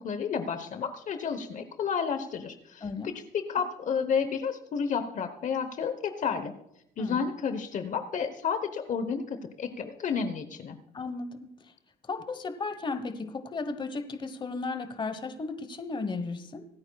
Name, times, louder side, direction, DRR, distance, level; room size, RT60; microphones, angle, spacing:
voice 1, 0.0-6.5 7.0-10.8, left 6 dB, 45° left, 9 dB, 1.0 m, -31 dB
voice 2, 2.8-3.1 7.0-7.3 10.9-11.5 12.1-16.6, left 3 dB, 30° left, 11 dB, 1.1 m, -35 dB
25.5 x 8.9 x 2.3 m, 0.80 s
cardioid pair, 110°, 17 cm